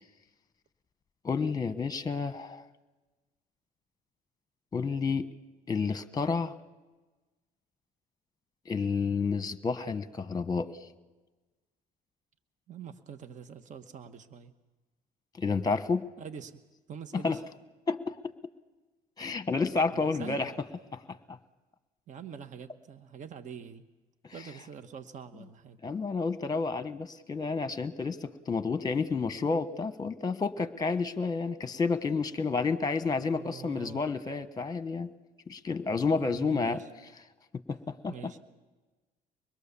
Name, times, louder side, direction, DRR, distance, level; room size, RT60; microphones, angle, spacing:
voice 1, 1.2-2.6 4.7-5.3 5.7-6.5 8.7-10.7 15.4-16.1 17.1-17.4 17.9-18.3 19.2-20.5 20.9-21.4 24.2-24.3 25.8-35.1 35.5-36.8 37.7-37.8 38.0-38.1, left 4 dB, 20° left, 12 dB, 1.3 m, -30 dB
voice 2, 12.7-14.5 16.2-16.6 16.9-17.4 19.9-20.6 22.1-23.9 24.3-25.8 33.3-34.1 36.1-36.9 38.1-38.4, right 7 dB, 45° right, 10 dB, 1.3 m, -45 dB
24.5 x 21.5 x 7.0 m, 1.2 s
cardioid pair, 110°, 17 cm